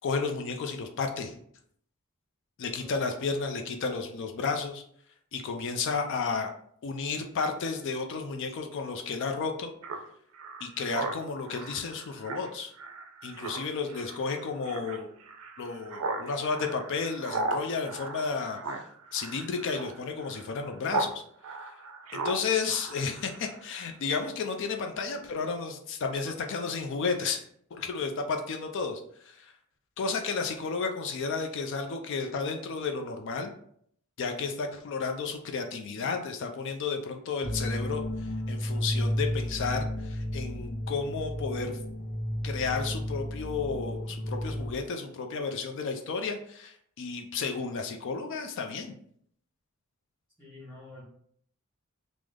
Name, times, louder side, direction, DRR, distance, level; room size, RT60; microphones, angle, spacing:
voice 1, 0.0-1.3 2.6-4.8 5.3-6.5 6.8-9.7 10.6-12.7 13.2-15.1 15.6-21.2 21.6-21.8 22.1-27.4 27.7-29.5 30.0-33.5 34.2-41.8 42.4-48.9, left 4 dB, 60° left, 5 dB, 0.4 m, -32 dB
voice 2, 2.7-3.0 50.4-51.0, left 2 dB, ahead, -9 dB, 1.2 m, -48 dB
Speech synthesizer, 9.8-21.1 21.4-23.6, right 3 dB, 75° right, 0.4 m, -37 dB
sound 1, 37.4-44.7, equal, 85° left, 1.0 m, -32 dB
3.3 x 2.0 x 3.5 m, 0.65 s
head